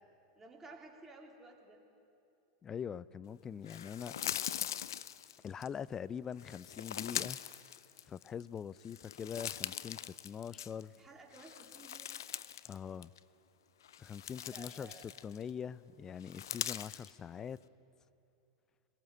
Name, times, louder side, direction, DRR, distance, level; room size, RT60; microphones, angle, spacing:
voice 1, 0.3-1.8 11.0-12.2 14.5-15.1, right 3 dB, 15° right, 1 dB, 3.0 m, -54 dB
voice 2, 2.6-4.2 5.4-7.4 8.1-10.9 12.7-13.1 14.0-17.6, left 7 dB, 25° left, 20 dB, 0.4 m, -43 dB
sound 1, 3.7-5.7 6.4-8.4 8.8-11.0 11.3-12.8 13.0-13.2 13.8-15.5 16.2-17.1, left 10 dB, 80° left, 0.5 m, -41 dB
22.0 x 18.5 x 7.9 m, 2.7 s
hypercardioid pair, 100°, 2 cm